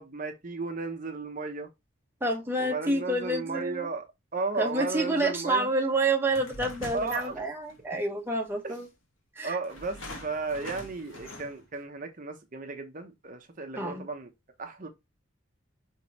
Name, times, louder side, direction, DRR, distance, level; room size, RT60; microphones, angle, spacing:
voice 1, 0.0-1.7 2.6-5.7 6.9-7.3 8.6-8.7 9.4-14.3 14.6-14.9, right 3 dB, 40° right, 0.9 m, -34 dB
voice 2, 2.2-3.9 4.6-8.9 9.4-9.6 13.8-14.0, right 2 dB, 10° right, 1.0 m, -28 dB
sound 1, 6.3-7.8 8.7-8.8 9.6-11.8, left 1 dB, 80° left, 2.0 m, -43 dB
6.3 x 3.7 x 4.2 m
head